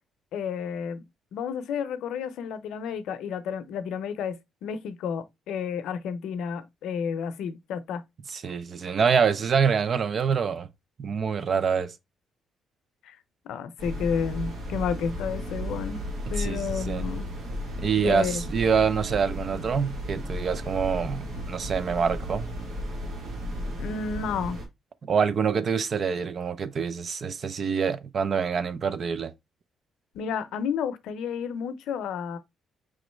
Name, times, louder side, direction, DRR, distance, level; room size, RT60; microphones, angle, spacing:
voice 1, 0.3-1.0 1.3-8.0 13.0-13.2 13.5-16.0 16.3-17.3 18.0-18.4 23.8-24.6 30.1-32.4, left 7 dB, 85° left, 0.6 m, -31 dB
voice 2, 8.3-10.7 11.0-11.9 16.3-17.0 17.8-22.5 25.0-29.3, right 6 dB, 50° right, 0.5 m, -26 dB
sound 1, 13.8-24.7, equal, 75° right, 1.4 m, -34 dB
4.9 x 3.1 x 3.1 m
cardioid pair, 90°, 0 cm